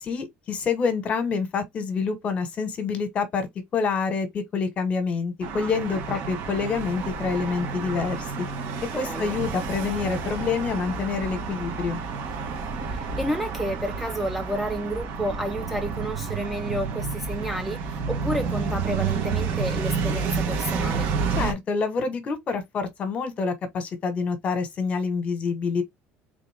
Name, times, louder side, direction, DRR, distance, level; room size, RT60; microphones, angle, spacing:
voice 1, 0.0-3.5 3.7-8.5 8.9-12.0 21.4-25.8, left 5 dB, 35° left, 1.3 m, -27 dB
sound 1, 5.4-21.5, right 5 dB, 60° right, 1.5 m, -30 dB
voice 2, 8.9-9.4 12.8-21.1, right 1 dB, ahead, 0.5 m, -31 dB
3.7 x 3.5 x 3.5 m
cardioid pair, 145°, 4 cm